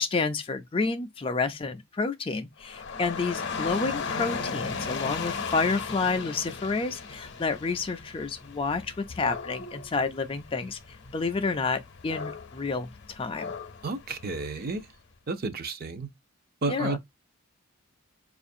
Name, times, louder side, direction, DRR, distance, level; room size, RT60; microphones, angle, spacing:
voice 1, 0.0-10.8 11.1-13.5 16.7-17.0, left 4 dB, 25° left, 0.3 m, -29 dB
Dog / Rain, 2.6-14.8, left 5 dB, 50° left, 0.7 m, -37 dB
voice 2, 13.8-14.9 15.3-16.1 16.6-17.0, right 3 dB, 45° right, 0.5 m, -31 dB
4.9 x 2.4 x 2.6 m
head